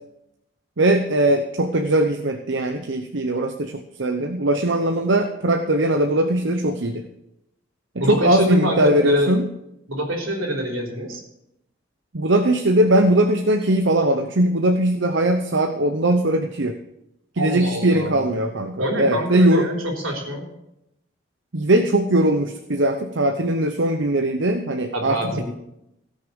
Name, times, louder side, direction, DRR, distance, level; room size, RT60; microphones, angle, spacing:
voice 1, 0.8-7.0 7.9-9.5 12.1-16.8 17.4-19.7 21.5-25.4, right 1 dB, 60° right, 6 dB, 0.8 m, -20 dB
voice 2, 8.0-9.3 9.9-11.2 17.4-18.3 18.8-20.5 24.9-25.4, equal, 80° right, 0 dB, 3.6 m, -25 dB
17.0 x 6.5 x 7.0 m, 0.85 s
head